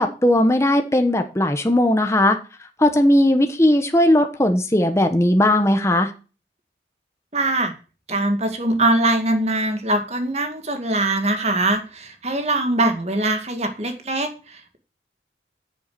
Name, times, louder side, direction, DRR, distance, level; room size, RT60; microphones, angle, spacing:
voice 1, 0.0-2.4 2.8-6.1, left 1 dB, 15° left, 6 dB, 1.1 m, -17 dB
voice 2, 7.3-7.7 8.1-14.8, right 2 dB, 35° right, 6 dB, 2.1 m, -22 dB
9.5 x 7.0 x 7.9 m, 0.35 s
head